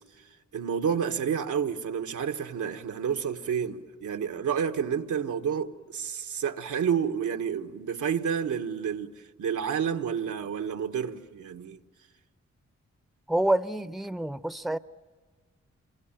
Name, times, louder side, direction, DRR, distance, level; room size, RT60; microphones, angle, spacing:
voice 1, 0.5-11.8, right 7 dB, 85° right, 1.3 m, -30 dB
voice 2, 13.3-14.8, right 1 dB, ahead, 0.8 m, -27 dB
27.0 x 24.5 x 9.0 m
cardioid pair, 55°, 29 cm